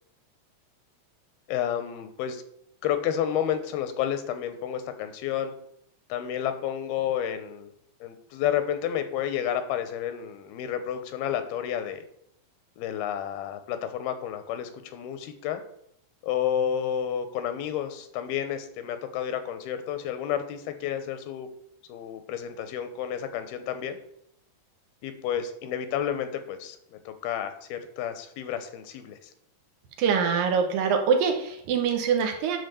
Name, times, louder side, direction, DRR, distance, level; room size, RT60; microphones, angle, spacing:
voice 1, 1.5-2.4 2.8-5.5 6.1-7.7 8.0-12.1 12.8-15.6 16.2-21.5 21.9-24.0 25.0-29.3, left 9 dB, 85° left, 9 dB, 2.8 m, -30 dB
voice 2, 30.0-32.6, right 6 dB, 75° right, 4 dB, 2.7 m, -24 dB
10.0 x 4.3 x 6.9 m, 0.73 s
omnidirectional pair, 4.3 m